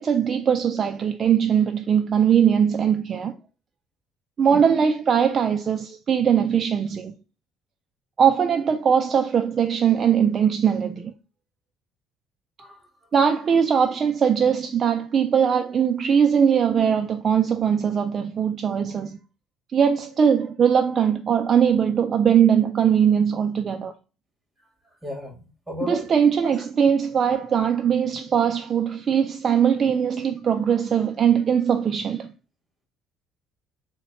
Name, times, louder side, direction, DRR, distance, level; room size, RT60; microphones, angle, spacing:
voice 1, 0.0-3.3 4.4-7.1 8.2-11.1 13.1-19.2 19.7-23.9 25.9-32.3, right 7 dB, 35° right, 0.3 m, -20 dB
voice 2, 12.6-13.1 24.6-26.1 26.4-26.5, left 1 dB, 5° right, 1.4 m, -36 dB
3.8 x 2.1 x 4.0 m
cardioid pair, 140°, 0 cm